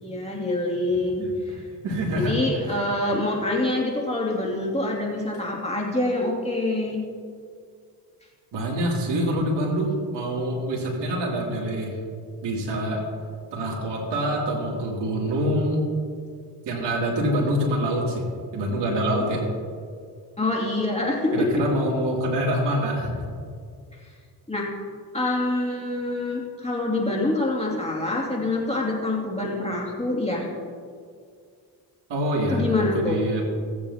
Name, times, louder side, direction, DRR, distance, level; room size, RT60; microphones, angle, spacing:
voice 1, 0.0-1.6 2.1-7.0 20.4-21.5 24.5-24.7 25.1-30.5 32.5-33.2, left 2 dB, 15° left, -3 dB, 2.5 m, -26 dB
voice 2, 1.8-2.4 8.5-12.0 12.4-13.0 13.5-15.8 16.7-18.2 18.5-19.5 21.3-23.1 32.1-33.4, right 1 dB, 60° right, -3 dB, 2.8 m, -25 dB
17.0 x 8.6 x 2.8 m, 2.1 s
supercardioid pair, 65°, 46 cm